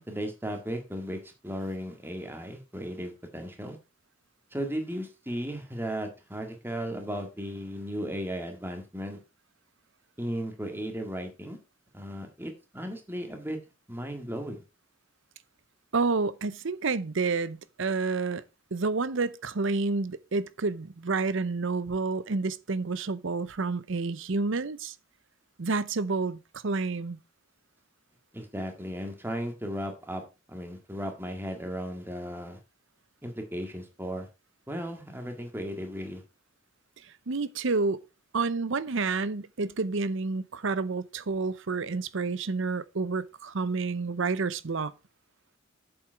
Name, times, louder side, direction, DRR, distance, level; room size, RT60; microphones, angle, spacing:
voice 1, 0.0-3.8 4.5-9.2 10.2-11.6 11.9-13.6 13.9-14.6 28.3-30.2 30.5-32.6 33.2-34.3 34.7-36.2, equal, 10° right, 1.8 m, -35 dB
voice 2, 15.9-18.4 18.7-24.9 25.6-27.2 37.3-38.0 38.3-44.9, right 4 dB, 65° right, 0.7 m, -29 dB
8.0 x 7.1 x 4.6 m
head